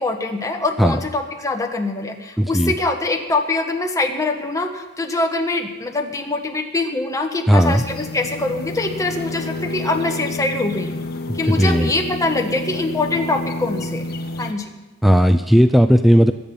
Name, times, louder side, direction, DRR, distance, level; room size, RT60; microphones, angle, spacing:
voice 1, 0.0-11.0 11.3-14.0 14.4-14.6, left 2 dB, 15° left, 3 dB, 1.4 m, -23 dB
voice 2, 2.4-2.7 7.5-7.8 11.3-11.9 15.0-16.3, equal, ahead, 8 dB, 0.4 m, -15 dB
sound 1, 7.6-14.5, left 2 dB, 45° left, 1.4 m, -29 dB
22.0 x 8.9 x 5.5 m, 1.2 s
head